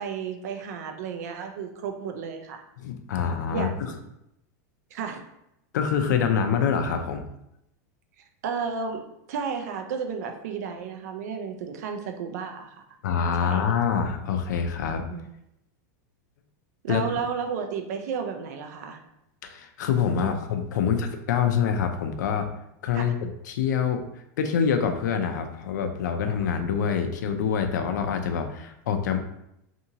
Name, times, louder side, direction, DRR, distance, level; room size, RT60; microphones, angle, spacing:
voice 1, 0.0-2.6 3.5-3.9 4.9-5.2 8.4-9.0 9.3-12.8 13.4-13.6 15.1-15.2 16.8-19.0 20.2-20.3 20.8-21.0 22.9-23.0, right 6 dB, 65° right, 5 dB, 0.5 m, -32 dB
voice 2, 2.8-3.9 5.7-7.2 13.0-15.0 16.9-17.1 19.4-22.5 22.8-23.1 23.4-24.0 24.4-29.2, left 7 dB, 80° left, 6 dB, 0.4 m, -25 dB
2.7 x 2.6 x 2.7 m, 0.82 s
supercardioid pair, 165°, 9 cm